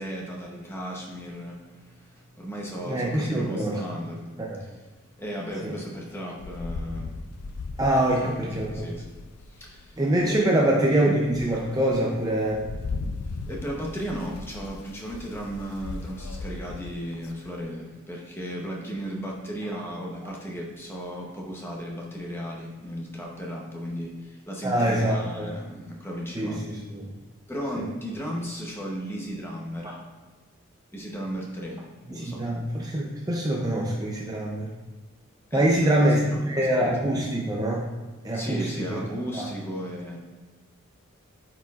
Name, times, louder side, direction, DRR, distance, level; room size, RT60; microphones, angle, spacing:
voice 1, 0.0-4.9 5.1-7.6 8.2-9.1 9.5-10.0 10.3-10.6 13.5-26.7 27.5-30.0 30.9-32.5 35.5-36.9 38.3-40.2, equal, 10° left, -2 dB, 0.8 m, -35 dB
voice 2, 2.9-3.8 4.4-4.6 5.6-5.7 7.8-8.9 10.0-12.6 24.6-25.5 26.4-27.1 27.8-27.9 32.1-34.7 35.5-37.8 38.2-39.0 39.3-39.5, right 1 dB, 15° right, -2 dB, 0.5 m, -24 dB
Rain, 6.4-9.9 10.4-10.5 11.0-17.6, left 3 dB, 85° left, 0.4 m, -38 dB
8.8 x 4.7 x 2.4 m, 1.3 s
head